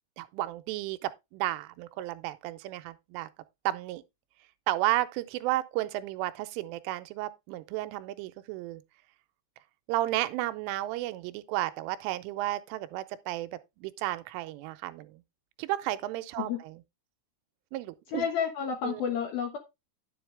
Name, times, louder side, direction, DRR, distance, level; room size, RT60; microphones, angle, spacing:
voice 1, 0.2-3.3 3.7-4.0 4.7-8.8 9.9-13.5 13.8-15.2 15.6-16.7 17.7-18.3 18.8-19.0, right 16 dB, 85° right, 3.1 m, -33 dB
voice 2, 18.1-19.6, left 7 dB, 65° left, 2.4 m, -30 dB
10.5 x 7.7 x 3.3 m
omnidirectional pair, 5.7 m